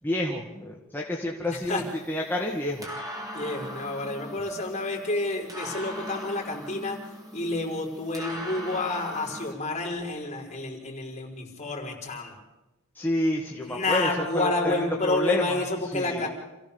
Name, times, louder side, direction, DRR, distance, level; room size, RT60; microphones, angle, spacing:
voice 1, 0.0-1.8 2.1-2.9 13.0-14.7 15.0-15.6 15.9-16.3, left 1 dB, 10° left, -2 dB, 1.8 m, -29 dB
voice 2, 1.5-1.8 3.3-7.0 7.3-12.3 13.5-16.3, left 2 dB, 30° left, -1 dB, 5.1 m, -29 dB
sound 1, 1.5-9.5, equal, 15° right, 3.9 m, -40 dB
28.0 x 16.0 x 7.1 m, 1.0 s
head